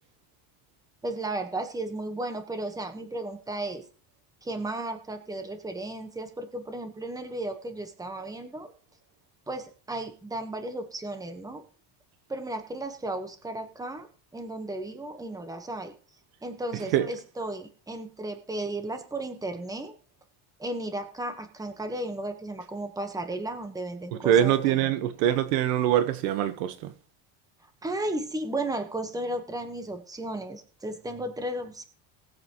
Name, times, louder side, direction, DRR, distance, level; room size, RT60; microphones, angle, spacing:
voice 1, 1.0-3.8 4.4-8.7 9.5-11.6 12.3-14.1 14.3-15.9 16.4-19.9 20.6-24.8 27.8-31.8, right 1 dB, 5° right, 1.4 m, -34 dB
voice 2, 16.7-17.1 24.1-26.9, right 11 dB, 90° right, 1.4 m, -24 dB
20.0 x 8.1 x 3.1 m
cardioid pair, 140°, 47 cm